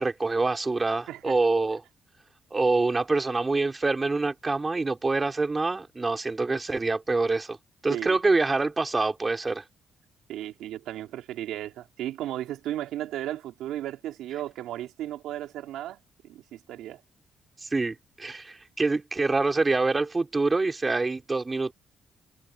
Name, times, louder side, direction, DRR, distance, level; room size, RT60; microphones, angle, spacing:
voice 1, 0.0-1.8 2.5-7.6 7.8-9.6 17.6-21.7, right 3 dB, 25° right, 4.4 m, -26 dB
voice 2, 10.3-17.0, right 13 dB, 85° right, 3.7 m, -35 dB
cardioid pair, 90°, 0 cm